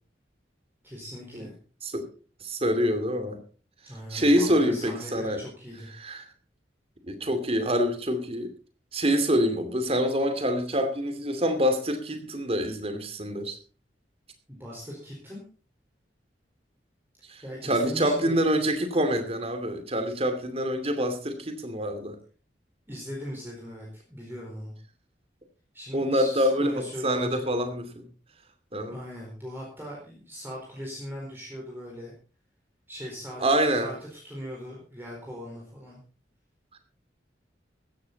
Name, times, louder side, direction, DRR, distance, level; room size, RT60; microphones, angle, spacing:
voice 1, 0.8-1.5 3.8-5.9 14.5-15.4 17.4-18.4 22.9-24.7 25.7-27.5 28.9-32.1 32.9-33.4 33.7-36.0, equal, 10° right, -3 dB, 4.5 m, -39 dB
voice 2, 2.4-3.4 4.1-5.4 6.0-6.2 7.1-8.5 8.9-13.6 17.3-22.2 25.9-28.1 28.7-29.0 33.4-33.9, equal, 35° right, 9 dB, 2.6 m, -26 dB
15.5 x 13.0 x 4.1 m, 0.38 s
head